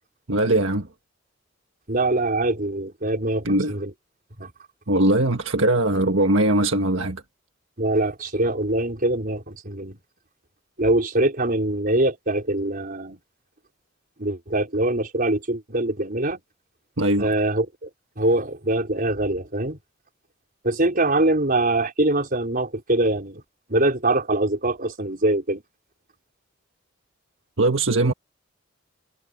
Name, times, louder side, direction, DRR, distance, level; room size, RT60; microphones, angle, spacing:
voice 1, 0.3-0.9 3.4-3.7 4.9-7.2 17.0-17.3 27.6-28.1, right 1 dB, 70° right, 1.7 m, -20 dB
voice 2, 1.9-3.9 4.4-4.5 7.8-10.0 10.8-13.2 14.2-16.4 17.2-17.9 18.2-19.8 20.6-23.4 23.7-25.6, right 2 dB, 45° right, 4.8 m, -23 dB
head